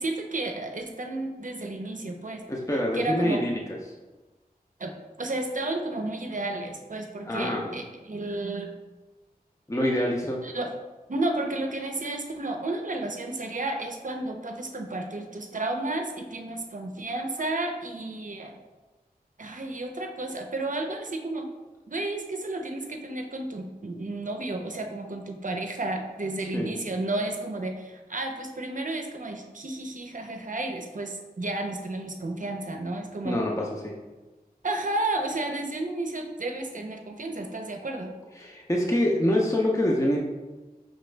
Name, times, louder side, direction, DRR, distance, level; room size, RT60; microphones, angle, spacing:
voice 1, 0.0-2.4 2.9-3.4 4.8-8.7 10.4-10.7 11.1-18.6 19.4-21.5 21.9-33.4 34.6-38.1, right 2 dB, 55° right, 3 dB, 0.6 m, -32 dB
voice 2, 2.5-3.6 7.3-7.7 9.7-10.4 26.5-26.7 33.2-34.0 38.4-40.2, left 1 dB, 20° left, -2 dB, 0.6 m, -25 dB
5.3 x 3.0 x 3.3 m, 1.2 s
wide cardioid pair, 40°, 16 cm